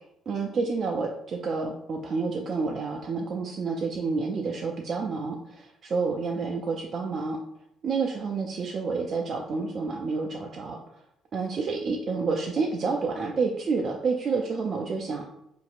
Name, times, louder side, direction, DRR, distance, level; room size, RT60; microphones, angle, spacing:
voice 1, 0.3-7.4 7.8-10.8 11.3-15.2, right 4 dB, 50° right, 1 dB, 0.4 m, -29 dB
3.8 x 2.7 x 2.4 m, 0.77 s
hypercardioid pair, 50°, 0 cm